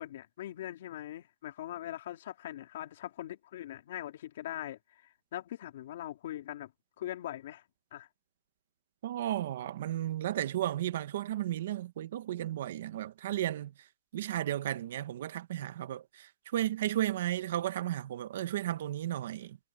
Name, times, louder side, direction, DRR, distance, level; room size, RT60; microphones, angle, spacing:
voice 1, 0.0-8.1, left 13 dB, 85° left, 3.7 m, -42 dB
voice 2, 9.0-13.7 14.1-19.6, right 13 dB, 85° right, 1.2 m, -34 dB
supercardioid pair, 175°, 0 cm